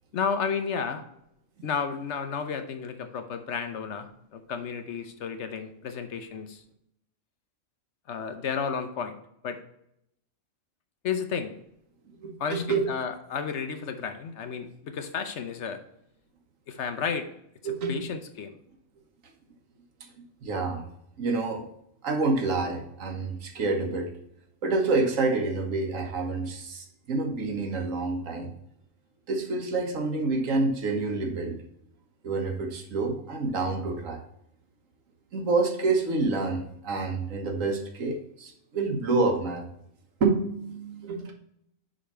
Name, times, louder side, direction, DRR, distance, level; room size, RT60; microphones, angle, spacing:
voice 1, 0.1-1.0 1.6-6.6 8.1-9.2 9.4-9.6 11.0-11.5 12.4-15.8 16.7-17.3 17.9-18.6, left 6 dB, 65° left, 8 dB, 1.0 m, -32 dB
voice 2, 12.2-12.9 17.6-18.0 20.0-20.1 20.4-20.8 21.2-21.6 22.0-24.1 24.6-28.5 29.3-31.6 32.2-34.2 35.3-39.7 40.2-41.3, right 3 dB, 70° right, 3 dB, 1.5 m, -28 dB
5.1 x 5.1 x 5.6 m, 0.75 s
omnidirectional pair, 1.4 m